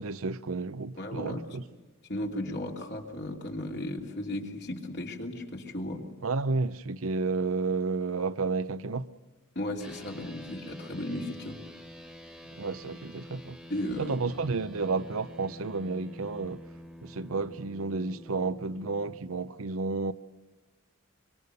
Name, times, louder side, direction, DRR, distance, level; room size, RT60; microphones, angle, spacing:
voice 1, 0.0-1.6 6.2-9.1 12.5-13.6 14.0-16.6 17.0-20.1, right 4 dB, 75° right, 0.8 m, -31 dB
voice 2, 1.0-1.6 2.1-6.0 9.5-11.6 13.7-14.2, left 1 dB, 50° left, 3.1 m, -35 dB
sound 1, 9.8-19.2, equal, ahead, 1.8 m, -48 dB
24.5 x 24.5 x 6.9 m
head